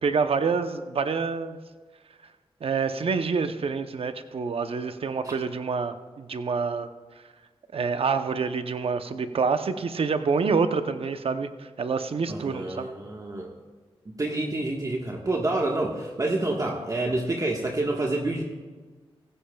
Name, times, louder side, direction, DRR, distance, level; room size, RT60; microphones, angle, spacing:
voice 1, 0.0-1.6 2.6-6.9 7.7-12.9, right 5 dB, 70° right, 9 dB, 0.8 m, -27 dB
voice 2, 12.3-13.5 14.2-18.4, right 2 dB, 35° right, 0 dB, 1.5 m, -28 dB
16.0 x 15.5 x 2.3 m, 1.4 s
cardioid pair, 60°, 10 cm